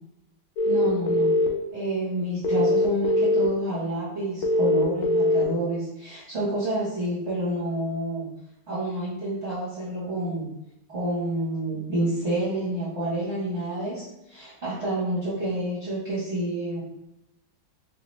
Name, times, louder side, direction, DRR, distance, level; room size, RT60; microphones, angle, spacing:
sound 1, 0.6-1.5 2.4-3.5 4.4-5.4, left 1 dB, 85° left, 1.4 m, -21 dB
voice 1, 0.6-1.4 1.7-8.3 8.7-10.5 10.9-16.8, right 1 dB, 40° right, -10 dB, 1.1 m, -29 dB
3.0 x 2.9 x 3.0 m, 0.88 s
omnidirectional pair, 2.2 m